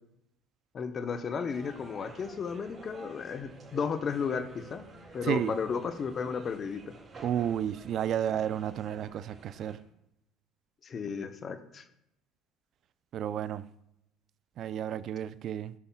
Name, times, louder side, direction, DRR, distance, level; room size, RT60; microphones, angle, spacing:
voice 1, 0.7-4.8 5.1-6.9 10.8-11.8, left 6 dB, 40° left, 0.7 m, -34 dB
sound 1, 1.5-9.8, right 2 dB, 30° right, 3.4 m, -51 dB
voice 2, 7.2-9.8 13.1-13.7 14.6-15.7, right 10 dB, 55° right, 0.4 m, -31 dB
16.0 x 5.5 x 2.3 m
supercardioid pair, 95°, 0 cm